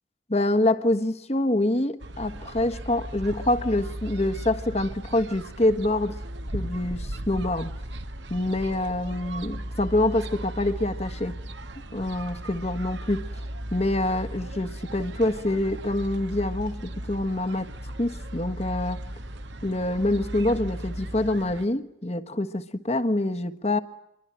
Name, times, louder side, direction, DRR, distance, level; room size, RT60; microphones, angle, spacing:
voice 1, 0.3-6.2 6.5-7.7 8.3-11.4 11.9-13.3 13.7-17.7 18.0-19.0 19.6-23.8, left 1 dB, 35° left, 1.4 m, -26 dB
sound 1, 2.0-21.6, right 1 dB, 70° right, 1.6 m, -36 dB
28.0 x 23.5 x 8.9 m
head